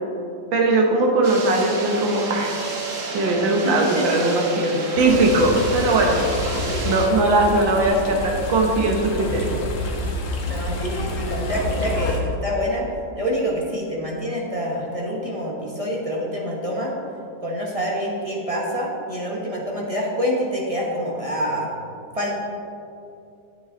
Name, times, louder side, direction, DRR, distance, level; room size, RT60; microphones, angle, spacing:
voice 1, 0.5-2.5 3.1-6.2 6.9-9.6, right 2 dB, 85° right, 1 dB, 1.9 m, -20 dB
sound 1, 1.2-7.1, right 3 dB, 50° right, 1.4 m, -31 dB
voice 2, 3.6-4.2 6.5-6.6 10.5-12.9 13.1-16.9 17.4-21.7 22.1-22.4, equal, 25° right, -2 dB, 1.0 m, -26 dB
sound 2, 5.0-12.2, left 1 dB, 50° left, 1.4 m, -28 dB
9.5 x 8.5 x 3.9 m, 2.6 s
omnidirectional pair, 2.0 m